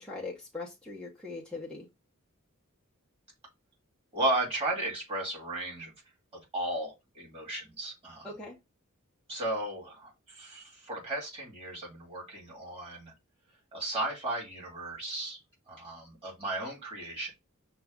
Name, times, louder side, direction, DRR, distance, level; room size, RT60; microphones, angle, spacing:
voice 1, 0.0-1.9 8.2-8.5, left 3 dB, 5° left, 0.6 m, -40 dB
voice 2, 4.1-5.9 6.3-8.3 9.3-13.1 13.7-15.4 15.7-17.3, right 2 dB, 25° right, 2.2 m, -35 dB
6.0 x 2.3 x 3.5 m
head